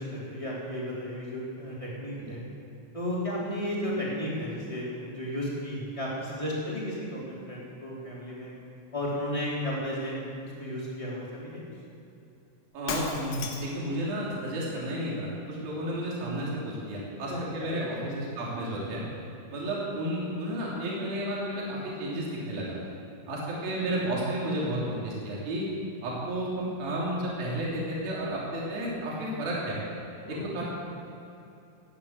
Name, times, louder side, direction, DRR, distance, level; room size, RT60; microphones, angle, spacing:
voice 1, 0.0-2.4 2.9-8.5 8.9-10.3 10.6-11.6 17.3-18.1 30.2-30.6, equal, 10° left, -7 dB, 3.7 m, -34 dB
voice 2, 12.7-19.0 19.5-22.8 23.3-25.7 26.0-29.8 30.3-30.6, right 1 dB, 60° right, -5 dB, 4.8 m, -32 dB
Shatter, 12.9-13.9, left 5 dB, 75° left, 3.5 m, -34 dB
18.0 x 10.0 x 7.7 m, 2.8 s
omnidirectional pair, 4.8 m